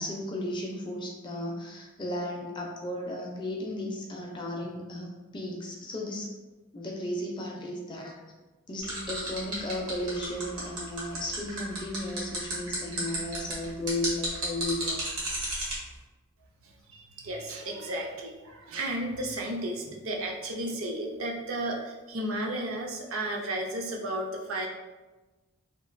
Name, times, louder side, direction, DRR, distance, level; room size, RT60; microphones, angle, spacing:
voice 1, 0.0-6.3 6.7-8.1 8.7-15.0 19.8-20.0, left 1 dB, 20° left, -1 dB, 0.4 m, -35 dB
sound 1, 8.8-15.7, right 1 dB, 85° right, 1.1 m, -33 dB
voice 2, 16.6-24.7, right 1 dB, 65° right, 0 dB, 0.5 m, -33 dB
2.9 x 2.4 x 2.5 m, 1.2 s
head